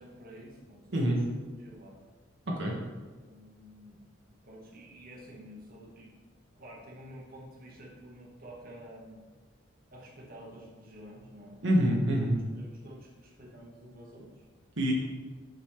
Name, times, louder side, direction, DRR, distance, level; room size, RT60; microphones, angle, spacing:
voice 1, 0.0-2.0 3.3-4.0 4.4-6.1 6.5-9.2 9.9-11.6 12.6-14.4, equal, 50° right, -3 dB, 1.5 m, -50 dB
voice 2, 2.5-2.8 11.6-12.4 14.8-14.9, equal, 65° right, -2 dB, 1.2 m, -26 dB
7.9 x 3.7 x 4.3 m, 1.3 s
head